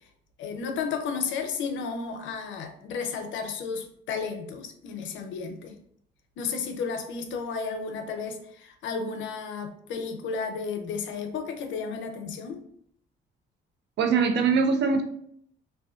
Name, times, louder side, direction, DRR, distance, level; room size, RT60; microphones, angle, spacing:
voice 1, 0.4-5.8 6.4-12.6, left 5 dB, 75° left, 6 dB, 0.4 m, -33 dB
voice 2, 14.0-15.0, right 5 dB, 60° right, 7 dB, 0.4 m, -22 dB
2.4 x 2.2 x 2.4 m, 0.68 s
cardioid pair, 90°, 20 cm